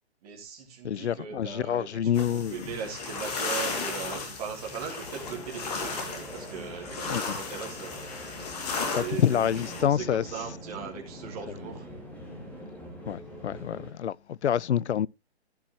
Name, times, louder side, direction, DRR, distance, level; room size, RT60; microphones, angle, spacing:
voice 1, 0.2-8.0 8.9-11.9, right 7 dB, 35° right, 3.6 m, -39 dB
voice 2, 0.8-2.7 7.1-7.4 9.0-10.2 13.1-15.1, left 9 dB, 80° left, 0.5 m, -27 dB
sound 1, 2.1-9.8, left 4 dB, 35° left, 2.8 m, -35 dB
sound 2, 5.1-13.9, equal, 5° left, 2.5 m, -44 dB
14.5 x 6.1 x 3.1 m
figure-of-eight pair, 135°, 33 cm